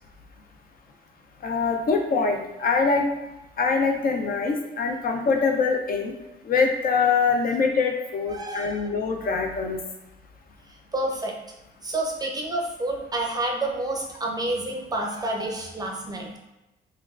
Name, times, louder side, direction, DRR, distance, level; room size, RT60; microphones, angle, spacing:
voice 1, 1.4-3.0 3.6-6.1 6.4-9.8, left 4 dB, 50° left, 3 dB, 0.4 m, -24 dB
voice 2, 8.3-8.9 10.9-11.3 11.8-16.3, right 1 dB, 20° right, 0 dB, 0.5 m, -29 dB
3.2 x 2.3 x 2.3 m, 0.98 s
cardioid pair, 90°, 20 cm